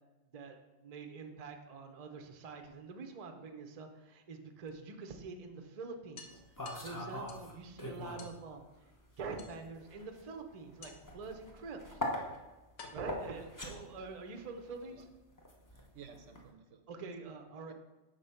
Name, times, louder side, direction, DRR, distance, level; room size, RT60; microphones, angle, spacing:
voice 1, 0.8-6.3 6.8-8.6 9.2-12.0 12.9-15.0 16.9-17.7, right 4 dB, 40° right, 5 dB, 0.6 m, -45 dB
sound 1, 2.1-3.2 4.7-4.8 5.2-5.3 5.6-5.7 6.2-7.6 8.2-8.4 9.4-9.9 10.8-11.2 12.1-12.2 12.8-14.1, left 4 dB, 60° left, 1.0 m, -54 dB
sound 2, 6.3-8.4 8.7-16.5, left 1 dB, 20° left, 0.7 m, -43 dB
voice 2, 13.4-13.9 14.8-15.0 15.7-17.0 17.7-17.8, right 6 dB, 70° right, 7 dB, 0.9 m, -57 dB
6.6 x 4.0 x 5.6 m, 1.1 s
omnidirectional pair, 1.3 m